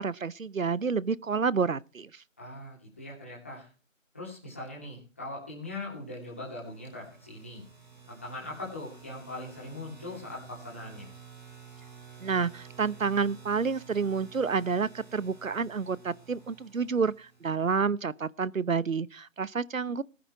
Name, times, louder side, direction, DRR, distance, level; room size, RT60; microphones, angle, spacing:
voice 1, 0.0-2.2 12.2-20.0, right 5 dB, 80° right, 0.9 m, -29 dB
voice 2, 2.4-3.7 4.1-7.6 8.1-11.1, left 2 dB, 10° left, 2.8 m, -41 dB
sound 1, 6.1-17.9, right 6 dB, 35° right, 4.6 m, -52 dB
19.0 x 10.0 x 4.6 m
figure-of-eight pair, 175°, 39 cm